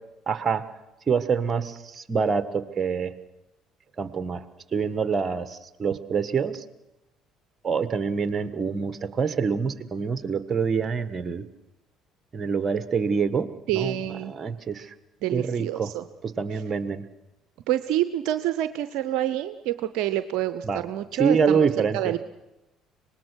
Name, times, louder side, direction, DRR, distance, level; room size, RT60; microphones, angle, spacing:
voice 1, 0.3-0.6 1.1-3.1 4.0-4.4 4.7-6.6 7.6-11.4 12.3-13.5 13.7-14.0 14.3-14.9 15.3-15.9 16.2-17.0 20.6-20.8 21.2-22.1, right 5 dB, 40° right, 12 dB, 1.5 m, -26 dB
voice 2, 13.7-14.3 15.2-16.1 17.7-21.6 21.9-22.3, right 13 dB, 70° right, 12 dB, 0.6 m, -27 dB
24.5 x 19.5 x 6.4 m, 0.95 s
hypercardioid pair, 60°, 0 cm